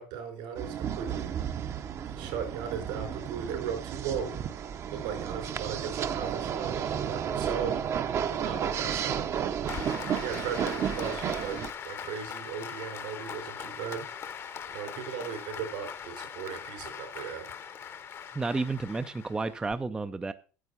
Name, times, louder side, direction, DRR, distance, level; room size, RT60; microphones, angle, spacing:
voice 1, 0.0-1.4 2.1-4.3 4.9-7.7 8.3-9.3 10.1-11.6 11.8-14.0 14.7-17.5, right 7 dB, 80° right, 4.7 m, -37 dB
sound 1, 0.6-11.7, right 8 dB, 35° right, 0.7 m, -32 dB
Applause, 9.7-19.7, left 7 dB, 30° left, 0.8 m, -41 dB
voice 2, 18.3-20.3, right 3 dB, 10° right, 0.4 m, -31 dB
9.6 x 7.7 x 5.5 m
cardioid pair, 155°, 8 cm